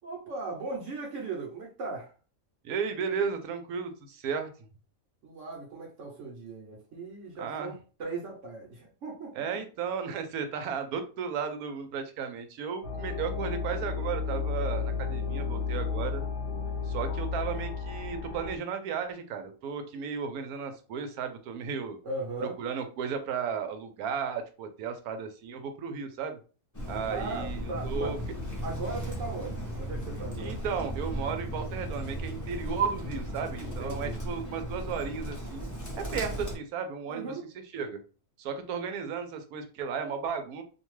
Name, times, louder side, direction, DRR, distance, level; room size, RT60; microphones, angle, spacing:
voice 1, 0.0-2.1 5.2-9.3 22.0-22.6 27.1-28.2 28.6-30.6 33.6-34.2 37.1-37.5, right 3 dB, 65° right, 1.0 m, -38 dB
voice 2, 2.6-4.5 7.4-7.7 9.3-16.2 16.8-22.0 22.4-26.4 26.9-28.2 30.4-35.7 36.0-37.4 37.7-38.0 38.4-40.6, right 6 dB, 85° right, 1.1 m, -34 dB
sound 1, 12.8-18.6, left 5 dB, 60° left, 0.8 m, -32 dB
Bird, 26.7-36.6, equal, 20° left, 0.6 m, -36 dB
2.6 x 2.2 x 3.0 m
omnidirectional pair, 1.5 m